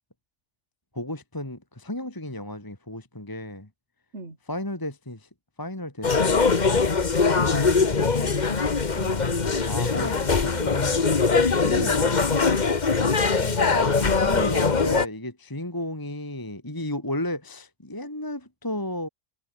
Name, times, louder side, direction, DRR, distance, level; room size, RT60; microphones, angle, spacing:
voice 1, 0.9-3.7 4.5-5.3 5.6-6.8 7.4-8.1 9.6-12.4 13.7-19.1, left 1 dB, 15° left, 2.2 m, -34 dB
sound 1, 6.0-15.1, left 4 dB, 30° left, 1.3 m, -22 dB
voice 2, 7.6-8.5 9.0-10.3 11.1-11.2 13.0-13.8, right 3 dB, 45° right, 4.1 m, -40 dB
omnidirectional pair, 1.7 m